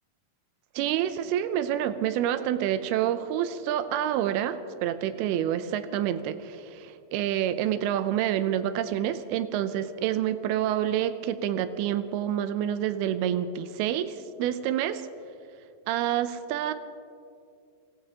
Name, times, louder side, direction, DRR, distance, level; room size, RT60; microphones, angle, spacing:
voice 1, 0.8-15.0 15.9-16.7, right 11 dB, 90° right, 11 dB, 2.6 m, -28 dB
24.5 x 18.0 x 2.9 m, 2.4 s
omnidirectional pair, 4.4 m